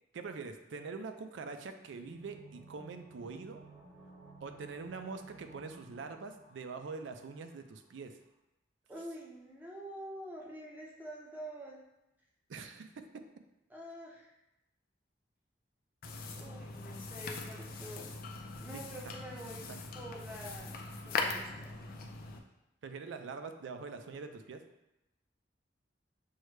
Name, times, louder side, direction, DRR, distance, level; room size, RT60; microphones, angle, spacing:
voice 1, 0.1-3.6 4.4-8.2 12.5-13.2 19.0-19.1 22.8-24.6, right 4 dB, 80° right, 7 dB, 0.4 m, -44 dB
sound 1, 1.8-7.5 7.8-7.9, right 3 dB, 30° right, 1.3 m, -55 dB
voice 2, 8.9-11.8 13.7-14.3 16.3-18.1 18.6-19.6 19.9-20.8 21.0-21.7, right 1 dB, 10° right, -3 dB, 0.7 m, -46 dB
sound 2, 16.0-22.4, left 4 dB, 50° left, 0.4 m, -41 dB
6.2 x 2.1 x 3.2 m, 0.92 s
head